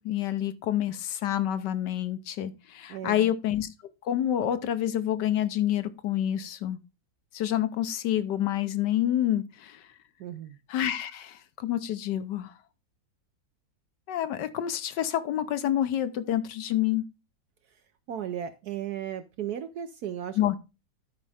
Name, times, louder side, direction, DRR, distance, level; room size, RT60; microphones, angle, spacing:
voice 1, 0.0-3.7 4.0-6.8 7.3-9.8 10.7-12.5 14.1-17.0 20.4-20.6, left 11 dB, 70° left, 1.3 m, -28 dB
voice 2, 2.9-3.3 10.2-10.6 18.1-20.4, right 9 dB, 65° right, 1.0 m, -35 dB
12.0 x 5.3 x 3.4 m
omnidirectional pair, 2.0 m